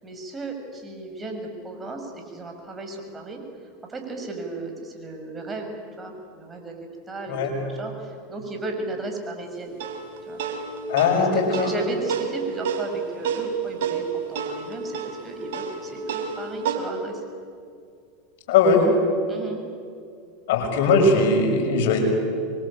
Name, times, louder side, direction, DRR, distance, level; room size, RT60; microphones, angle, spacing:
voice 1, 0.0-3.4 3.9-5.7 6.0-6.7 7.1-9.8 10.3-10.4 11.2-17.2 19.3-19.6, right 2 dB, 20° right, 3 dB, 6.5 m, -35 dB
sound 1, 9.8-16.8, right 6 dB, 70° right, 4.0 m, -30 dB
voice 2, 10.9-11.7 18.5-18.8 20.5-22.0, left 4 dB, 65° left, 3 dB, 6.4 m, -19 dB
26.5 x 23.5 x 8.9 m, 2.4 s
hypercardioid pair, 95°, 0 cm